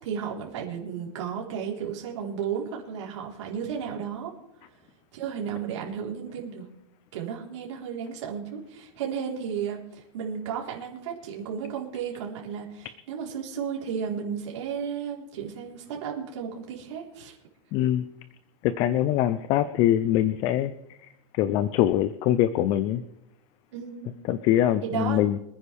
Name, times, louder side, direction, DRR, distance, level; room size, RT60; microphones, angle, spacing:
voice 1, 0.0-4.3 5.1-6.7 7.1-17.4 23.7-24.1 24.8-25.2, right 7 dB, 60° right, -2 dB, 4.0 m, -33 dB
voice 2, 17.7-18.0 18.6-20.7 21.0-23.0 24.3-25.4, left 12 dB, 25° left, 13 dB, 0.4 m, -23 dB
26.0 x 9.7 x 3.5 m, 0.84 s
supercardioid pair, 170°, 17 cm